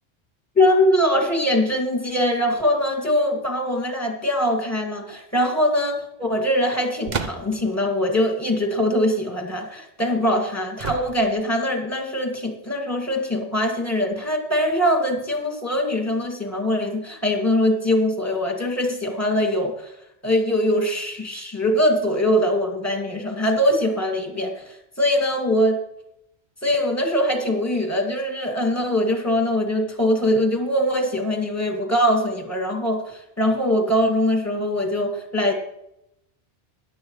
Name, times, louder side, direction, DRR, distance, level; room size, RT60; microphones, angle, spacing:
voice 1, 0.6-19.9 20.2-25.8 26.6-35.5, left 1 dB, 15° left, 1 dB, 2.3 m, -22 dB
sound 1, 7.1-7.7 10.8-11.5, right 5 dB, 45° right, 0.8 m, -31 dB
17.0 x 11.0 x 3.2 m, 0.82 s
omnidirectional pair, 1.1 m